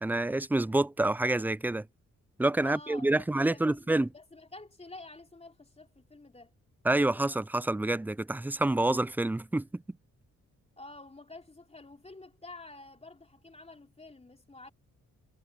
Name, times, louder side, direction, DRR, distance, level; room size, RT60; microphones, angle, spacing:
voice 1, 0.0-1.9 2.4-4.1 6.8-9.8, right 2 dB, 5° right, 0.4 m, -27 dB
voice 2, 2.6-6.5 10.8-14.7, left 2 dB, 20° left, 3.6 m, -49 dB
cardioid pair, 85°, 31 cm